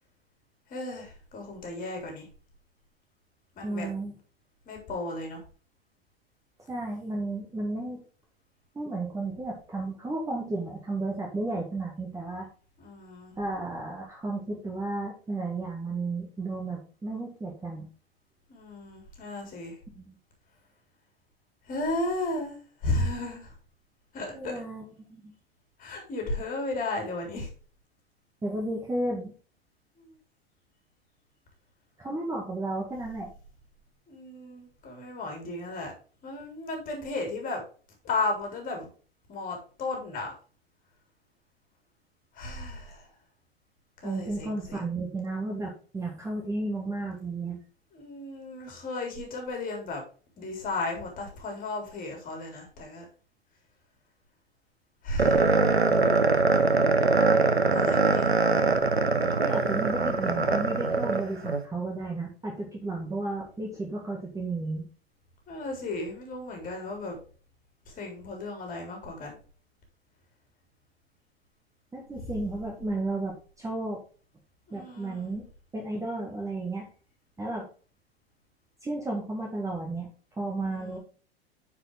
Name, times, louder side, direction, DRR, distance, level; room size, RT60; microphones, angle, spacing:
voice 1, 0.7-2.3 3.5-3.9 4.6-5.4 12.8-13.3 18.5-19.8 21.7-23.5 24.1-24.6 25.8-27.5 30.0-30.2 34.1-35.9 36.2-37.6 38.0-38.9 39.3-40.3 42.3-43.1 44.0-44.8 47.9-50.0 50.4-53.0 55.0-55.5 57.7-58.3 65.5-67.2 67.9-69.4 74.7-75.4 80.6-81.0, left 2 dB, 25° left, 2 dB, 3.5 m, -34 dB
voice 2, 3.6-4.1 6.7-8.0 8.7-12.5 13.4-17.9 19.9-20.1 24.3-25.3 28.4-29.3 32.0-33.3 44.0-47.6 59.4-64.9 71.9-74.0 74.7-75.5 75.7-76.8 77.4-77.7 78.8-80.1 80.4-81.0, right 2 dB, 10° right, -1 dB, 1.7 m, -33 dB
sound 1, 55.2-61.6, right 3 dB, 85° right, 1.0 m, -23 dB
9.6 x 5.0 x 3.6 m, 0.38 s
figure-of-eight pair, 90°, 31 cm